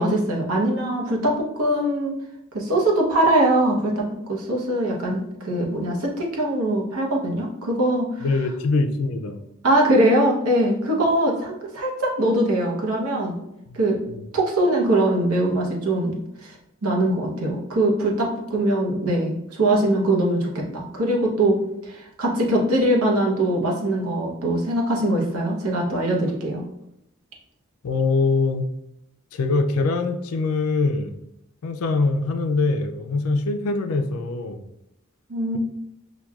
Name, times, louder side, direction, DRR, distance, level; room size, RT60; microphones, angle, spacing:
voice 1, 0.0-2.2 2.5-8.2 9.6-13.4 13.7-14.0 14.3-16.6 16.8-21.6 21.8-26.6 35.3-35.6, right 1 dB, 90° right, 0 dB, 0.8 m, -22 dB
voice 2, 8.2-9.4 13.7-13.8 14.1-14.3 27.8-28.7 29.3-31.2 31.6-34.6, left 3 dB, 80° left, 5 dB, 0.4 m, -23 dB
5.8 x 2.3 x 2.3 m, 0.82 s
head